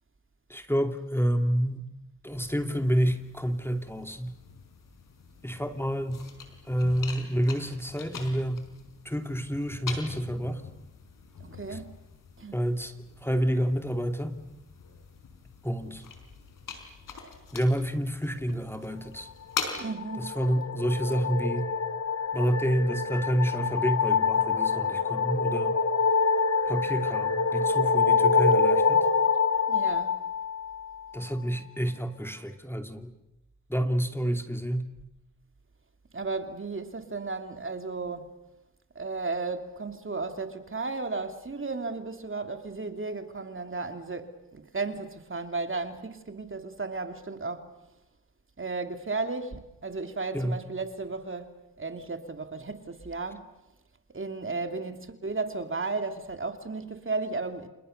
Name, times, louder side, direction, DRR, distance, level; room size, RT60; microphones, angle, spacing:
voice 1, 0.5-1.8 2.2-4.3 5.4-6.2 6.6-8.7 9.0-10.6 11.7-11.8 12.5-12.9 13.2-14.5 15.6-16.0 17.5-19.3 20.2-21.7 22.3-25.8 26.7-29.1 31.1-33.1 33.7-34.9 50.3-50.6, equal, 5° left, 2.7 m, -28 dB
sound 1, 2.3-19.8, left 6 dB, 75° left, 4.9 m, -43 dB
voice 2, 11.4-11.9 12.4-12.6 19.8-20.4 29.7-30.2 36.1-38.4 38.9-47.7 48.6-53.5 54.1-57.7, right 3 dB, 40° right, 3.0 m, -34 dB
sound 2, 19.8-31.2, left 5 dB, 50° left, 1.9 m, -26 dB
29.0 x 28.0 x 6.7 m
supercardioid pair, 40°, 33 cm